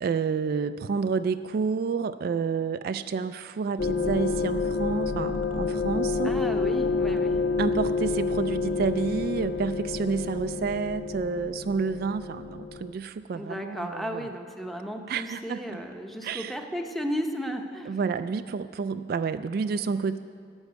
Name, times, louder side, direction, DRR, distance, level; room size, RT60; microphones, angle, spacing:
voice 1, 0.0-6.3 7.6-14.3 15.1-15.8 16.2-16.6 17.9-20.2, right 5 dB, 55° right, 11 dB, 0.3 m, -29 dB
sound 1, 3.8-12.9, left 4 dB, 65° left, 0.5 m, -28 dB
voice 2, 6.2-7.4 13.3-17.9, equal, ahead, 4 dB, 0.8 m, -34 dB
12.0 x 7.2 x 9.2 m, 2.3 s
head